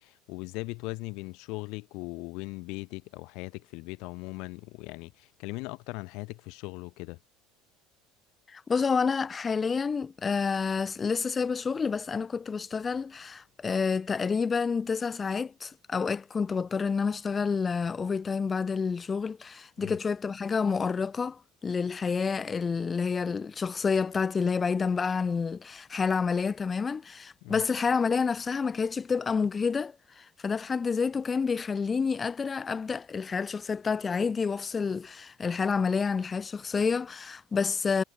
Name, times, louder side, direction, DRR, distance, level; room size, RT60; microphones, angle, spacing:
voice 1, 0.0-7.2 19.8-20.0 27.4-27.6, left 25 dB, 60° left, 2.2 m, -39 dB
voice 2, 8.5-38.0, left 5 dB, 15° left, 1.9 m, -29 dB
cardioid pair, 165°, 0 cm